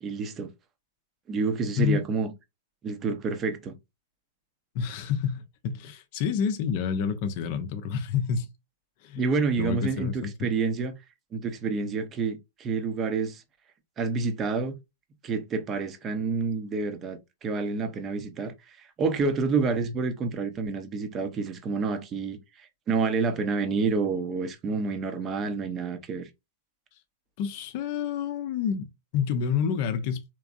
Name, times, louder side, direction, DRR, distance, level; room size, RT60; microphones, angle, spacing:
voice 1, 0.0-0.5 1.3-2.3 2.8-3.8 9.2-11.0 11.3-13.4 14.0-14.8 15.2-26.3, right 4 dB, 25° right, 0.7 m, -28 dB
voice 2, 4.7-8.5 9.0-9.3 9.6-10.3 27.4-30.2, left 7 dB, 45° left, 0.5 m, -28 dB
3.4 x 3.0 x 2.4 m
figure-of-eight pair, 100°, 0 cm